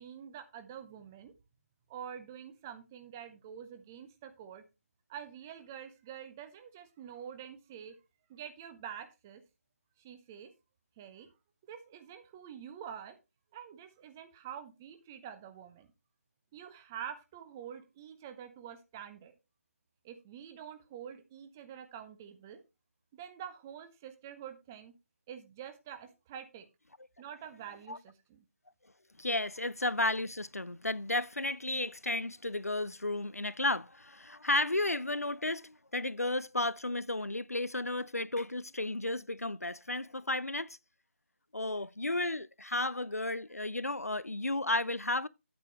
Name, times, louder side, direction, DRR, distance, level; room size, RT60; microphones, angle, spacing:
voice 1, 0.0-1.3 1.9-4.6 5.1-8.0 8.3-9.4 10.0-10.5 11.0-11.3 11.6-13.2 13.5-15.9 16.5-19.3 20.0-22.6 23.1-24.9 25.3-26.7 27.2-28.4, right 9 dB, 10° right, 0.5 m, -47 dB
voice 2, 29.2-40.8 41.5-45.3, left 2 dB, 90° left, 0.5 m, -33 dB
8.7 x 8.2 x 3.2 m
figure-of-eight pair, 155°, 8 cm